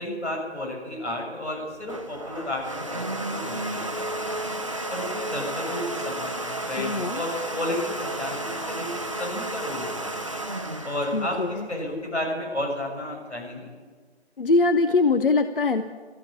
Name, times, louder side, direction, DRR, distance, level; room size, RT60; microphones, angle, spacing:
voice 1, 0.0-4.4 4.9-6.4 6.6-10.2 10.8-13.7, left 1 dB, 85° left, 0 dB, 6.8 m, -32 dB
Domestic sounds home sounds, 1.5-12.2, right 1 dB, 30° right, 0.6 m, -32 dB
voice 2, 6.8-7.2 11.1-11.7 14.4-15.8, left 3 dB, 50° left, 9 dB, 0.7 m, -22 dB
13.0 x 12.5 x 8.6 m, 1.5 s
figure-of-eight pair, 175°, 34 cm